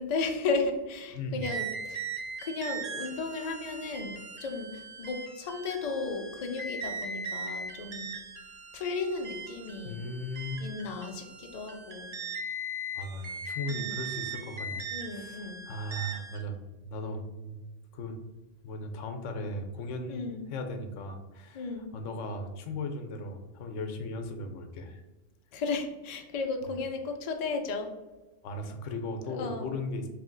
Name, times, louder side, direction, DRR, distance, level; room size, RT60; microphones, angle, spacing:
voice 1, 0.0-2.1 2.4-4.1 4.4-8.1 8.7-10.0 10.6-12.1 13.7-14.0 14.9-15.6 20.1-20.4 21.5-21.9 25.5-27.9 29.4-29.7, left 3 dB, 60° left, 4 dB, 0.4 m, -34 dB
voice 2, 1.1-1.5 9.8-10.6 12.9-17.6 17.9-18.2 18.6-25.0 28.4-30.1, left 1 dB, 85° left, 6 dB, 0.9 m, -37 dB
sound 1, 1.4-16.4, right 3 dB, 50° right, 0.5 m, -39 dB
3.3 x 2.7 x 3.8 m, 1.1 s
omnidirectional pair, 1.3 m